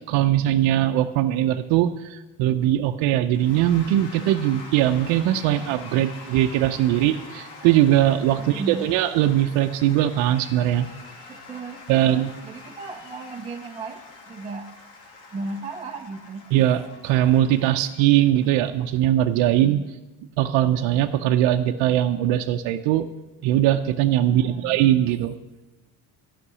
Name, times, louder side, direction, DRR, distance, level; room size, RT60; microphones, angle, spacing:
voice 1, 0.0-10.9 11.9-12.3 16.5-19.9 20.4-23.1 23.4-25.3, right 12 dB, 75° right, 4 dB, 0.7 m, -21 dB
Cheering / Applause / Crowd, 3.3-19.0, left 3 dB, 75° left, 2.6 m, -45 dB
voice 2, 8.4-8.9 11.3-14.0 14.3-14.7 15.3-16.5 24.3-24.8, right 3 dB, 15° right, 0 dB, 0.6 m, -35 dB
13.0 x 5.9 x 9.6 m, 1.1 s
cardioid pair, 130°, 46 cm